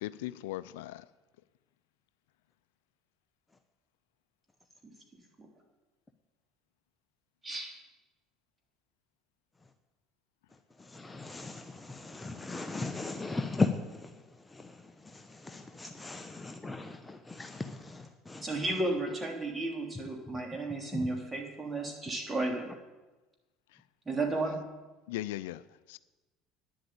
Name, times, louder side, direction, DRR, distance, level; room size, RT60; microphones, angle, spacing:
voice 1, 0.0-1.0 25.1-25.6 25.9-26.0, left 15 dB, 80° left, 0.4 m, -38 dB
voice 2, 11.0-11.6 12.1-13.7 15.8-16.9 17.4-17.5 18.3-18.4, left 3 dB, 15° left, 0.9 m, -34 dB
voice 3, 18.4-22.7 24.0-24.6, right 2 dB, 20° right, 3.2 m, -33 dB
10.0 x 7.8 x 8.7 m
hypercardioid pair, 80°, 0 cm